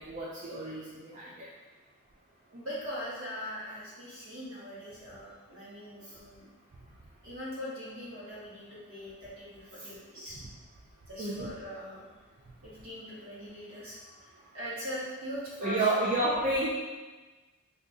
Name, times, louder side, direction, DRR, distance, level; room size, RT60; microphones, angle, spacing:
voice 1, 0.0-1.5 9.8-9.9 10.4-10.5 11.2-11.5 15.6-16.7, right 2 dB, 35° right, -6 dB, 0.4 m, -30 dB
voice 2, 2.5-6.5 7.2-10.3 11.1-12.0 12.6-14.3 14.5-15.9, equal, 65° right, -8 dB, 1.2 m, -41 dB
3.5 x 2.7 x 2.6 m, 1.3 s
head